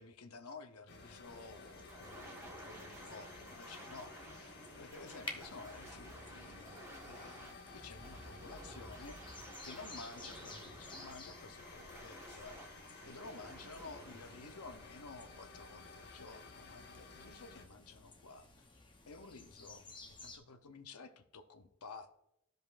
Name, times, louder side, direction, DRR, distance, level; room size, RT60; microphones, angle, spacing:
voice 1, 0.0-9.2 9.6-12.8 13.0-18.5 19.1-22.2, left 3 dB, 90° left, 8 dB, 0.7 m, -53 dB
sound 1, 0.9-17.6, left 3 dB, 50° left, 1.1 m, -55 dB
sound 2, 1.2-20.4, left 3 dB, 20° left, 0.8 m, -55 dB
sound 3, 1.9-15.8, right 1 dB, 15° right, 1.4 m, -54 dB
14.5 x 5.2 x 2.5 m, 0.81 s
head